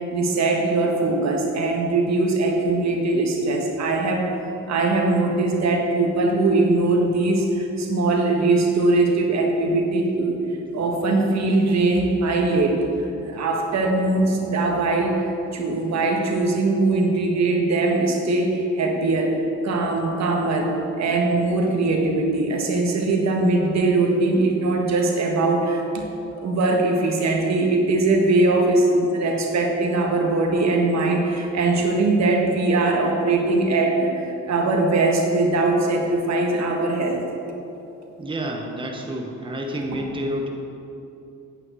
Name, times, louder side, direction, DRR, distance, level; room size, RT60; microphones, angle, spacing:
voice 1, 0.0-4.3 4.7-10.3 10.7-12.7 13.2-15.2 15.5-20.7 21.0-26.0 26.3-34.1 34.5-37.2, right 2 dB, 60° right, 1 dB, 1.6 m, -21 dB
voice 2, 38.2-40.5, equal, 15° right, 1 dB, 1.1 m, -29 dB
9.5 x 5.8 x 7.7 m, 2.9 s
cardioid pair, 90°, 30 cm